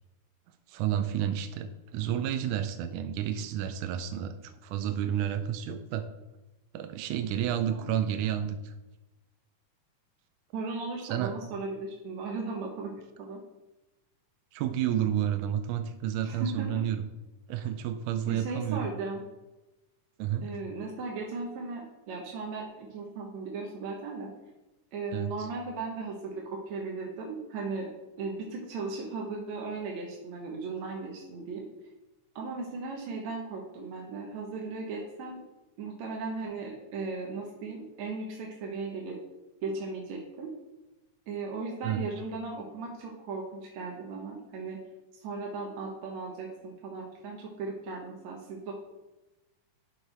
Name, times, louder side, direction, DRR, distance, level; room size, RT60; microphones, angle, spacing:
voice 1, 0.7-6.0 6.7-8.7 11.1-11.3 14.5-17.0 17.5-18.9 20.2-20.5 25.1-25.3 41.8-42.0, right 10 dB, 80° right, 7 dB, 2.0 m, -30 dB
voice 2, 10.5-12.9 13.2-13.4 16.2-16.7 17.6-17.7 18.3-19.2 20.4-24.3 24.9-27.9 28.2-31.7 32.4-35.4 35.8-39.2 39.6-40.5 41.3-44.8 45.1-48.7, right 3 dB, 65° right, -1 dB, 2.2 m, -37 dB
11.5 x 6.3 x 3.4 m, 1.0 s
omnidirectional pair, 3.7 m